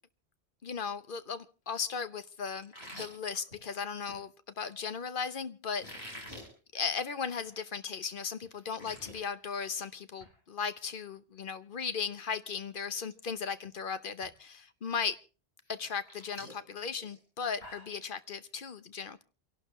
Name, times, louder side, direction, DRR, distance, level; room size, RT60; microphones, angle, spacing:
voice 1, 0.6-6.2 6.7-15.2 15.7-19.2, left 6 dB, 55° left, 12 dB, 1.1 m, -37 dB
sound 1, 2.6-4.2 5.7-6.5 6.9-7.1 7.4-7.5 8.0-8.1 8.4-9.2 9.6-9.9 10.2-10.3 12.2-12.3 12.7-13.0 13.3-13.8 14.2-14.3 15.7-18.0, equal, 80° left, 5.1 m, -48 dB
28.5 x 12.0 x 3.2 m, 0.36 s
omnidirectional pair, 1.1 m